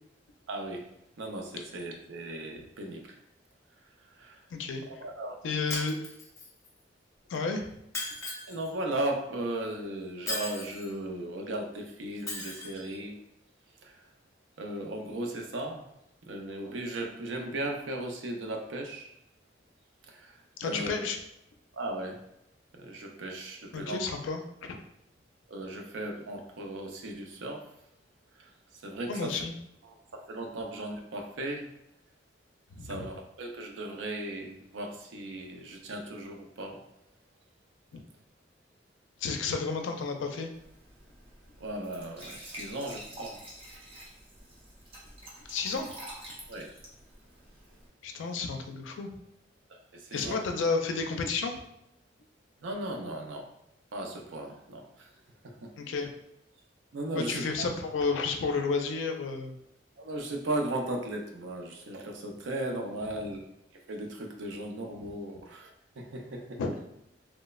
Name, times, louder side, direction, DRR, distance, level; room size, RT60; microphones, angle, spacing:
voice 1, 0.5-0.9 1.2-3.2 4.2-4.4 4.9-5.3 8.5-13.2 13.8-14.0 14.6-15.9 16.2-19.1 20.1-21.0 21.7-22.2 22.7-24.0 25.5-27.7 28.4-28.5 28.8-29.4 29.9-31.7 32.8-36.8 39.4-39.5 41.6-43.4 46.5-46.7 49.7-50.4 52.6-53.4 53.9-55.1 55.4-55.7 56.9-57.4 60.0-63.4 63.9-65.7 66.0-66.6, right 1 dB, 80° right, 3 dB, 0.5 m, -37 dB
voice 2, 4.5-4.8 5.4-6.0 7.3-7.7 20.6-21.2 23.7-24.8 29.1-29.5 32.7-33.1 37.9-38.0 39.2-40.5 45.5-45.9 48.0-49.1 50.1-51.6 55.8-56.1 57.1-59.6 65.0-65.1 66.6-66.7, left 4 dB, 80° left, 5 dB, 0.4 m, -31 dB
Shatter, 5.7-6.7 7.9-8.7 10.3-10.9 12.3-12.8, left 2 dB, 15° left, 0.5 m, -37 dB
Glass / Trickle dribble / Fill (with liquid), 40.5-47.9, right 1 dB, 30° right, 0.6 m, -48 dB
3.1 x 2.0 x 2.3 m, 0.81 s
head